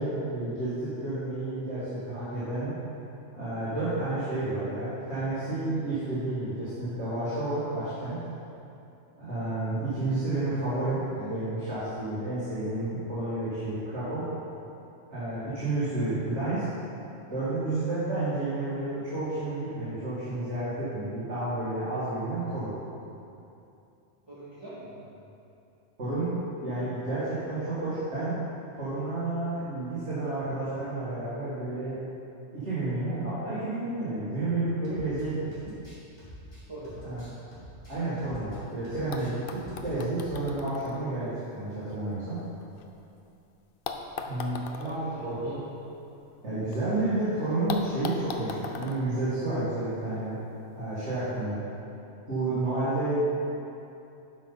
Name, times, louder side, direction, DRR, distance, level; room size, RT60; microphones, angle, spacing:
voice 1, 0.0-2.7 3.3-8.2 9.2-14.3 15.1-16.6 17.3-22.7 26.0-28.4 28.8-32.0 32.5-35.7 37.0-37.2 37.9-42.4 44.3-45.7 46.4-50.4 50.7-51.6 52.3-53.1, right 2 dB, 65° right, -13 dB, 2.5 m, -31 dB
voice 2, 24.3-25.0 36.7-37.1 44.1-45.5, right 1 dB, 20° right, -13 dB, 2.1 m, -44 dB
sound 1, 34.8-35.2 35.5-38.6 38.8-39.9 40.2-40.4, equal, 35° left, 2.4 m, -47 dB
sound 2, 38.7-38.8 39.1-43.2 43.8-46.8 47.1-47.2 47.7-50.1 51.1-51.2, left 5 dB, 55° left, 0.7 m, -41 dB
11.5 x 5.6 x 4.0 m, 2.7 s
omnidirectional pair, 1.3 m